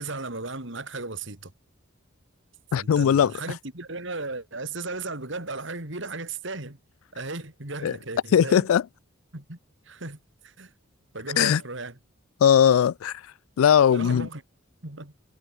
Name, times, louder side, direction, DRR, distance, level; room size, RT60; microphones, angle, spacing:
voice 1, 0.0-1.5 2.7-6.8 7.1-8.7 9.3-9.6 9.8-10.7 11.1-12.0 13.9-14.4 14.8-15.1, right 3 dB, 60° right, 3.2 m, -35 dB
voice 2, 2.7-3.3 7.8-8.0 8.3-8.8 11.4-11.6 12.4-13.1 13.6-14.3, left 8 dB, 80° left, 0.3 m, -19 dB
head